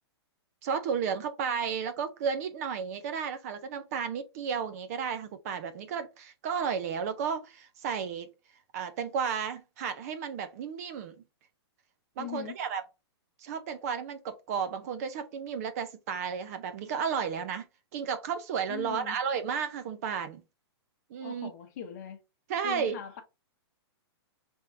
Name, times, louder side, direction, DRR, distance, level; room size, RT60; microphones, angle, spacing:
voice 1, 0.6-8.3 8.7-11.1 12.2-12.8 13.4-17.7 17.9-20.4 21.1-21.5 22.5-23.0, right 6 dB, 35° right, 0.5 m, -33 dB
voice 2, 12.2-12.6 18.7-19.2 21.2-22.2 22.6-23.2, left 9 dB, 40° left, 0.9 m, -40 dB
4.4 x 3.5 x 2.6 m
hypercardioid pair, 160°, 14 cm